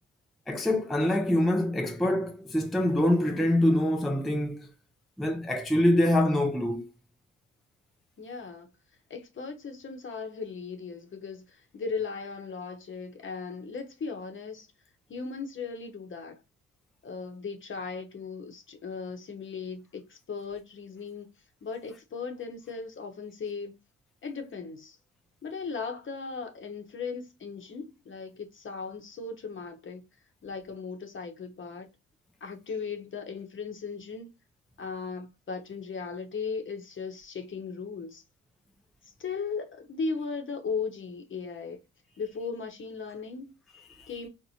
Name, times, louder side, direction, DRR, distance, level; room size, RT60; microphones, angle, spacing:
voice 1, 0.5-4.7 5.2-6.9 43.7-44.1, left 1 dB, ahead, 0.4 m, -25 dB
voice 2, 8.2-8.7 9.1-14.7 15.1-16.4 17.0-21.3 21.6-23.8 24.2-25.0 25.4-30.0 30.4-31.9 32.4-34.3 34.8-38.2 39.0-41.8 42.2-43.6 44.1-44.3, left 5 dB, 40° left, 0.9 m, -37 dB
4.2 x 2.1 x 2.7 m
cardioid pair, 90°, 30 cm